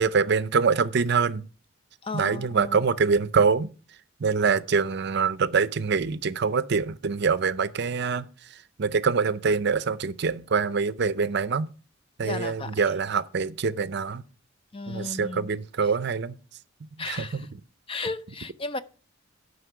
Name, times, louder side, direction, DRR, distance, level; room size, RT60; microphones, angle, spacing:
voice 1, 0.0-1.4 2.1-3.7 4.2-8.2 8.8-11.7 12.2-14.2 14.9-16.4 17.1-17.4, right 5 dB, 55° right, 0.5 m, -24 dB
voice 2, 2.0-2.8 12.2-12.8 14.7-15.5 17.0-17.5 17.9-18.8, left 3 dB, 25° left, 0.5 m, -34 dB
11.5 x 5.4 x 5.8 m
head